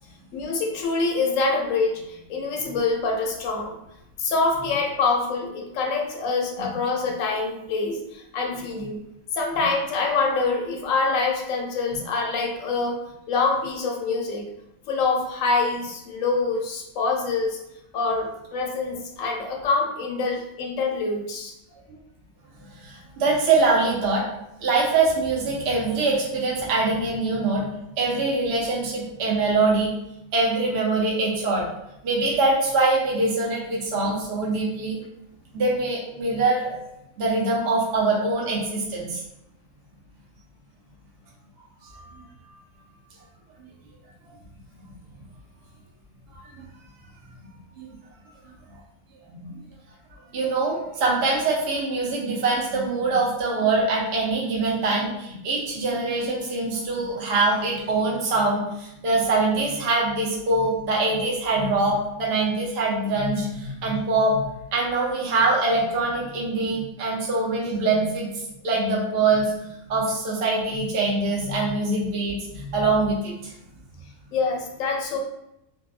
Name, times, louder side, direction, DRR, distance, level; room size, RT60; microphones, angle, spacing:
voice 1, 0.3-3.8 4.2-9.0 9.3-13.0 13.3-14.5 14.9-17.6 17.9-21.5 74.3-75.2, left 3 dB, 70° left, 2 dB, 0.9 m, -25 dB
voice 2, 22.8-24.3 24.6-27.6 28.0-29.9 30.3-31.7 32.0-35.0 35.5-36.8 37.2-39.2 41.8-42.2 47.8-47.9 49.4-49.6 50.3-64.4 64.7-68.3 68.6-69.5 69.9-73.5, right 3 dB, 60° right, -3 dB, 0.7 m, -23 dB
2.6 x 2.4 x 2.3 m, 0.85 s
omnidirectional pair, 1.5 m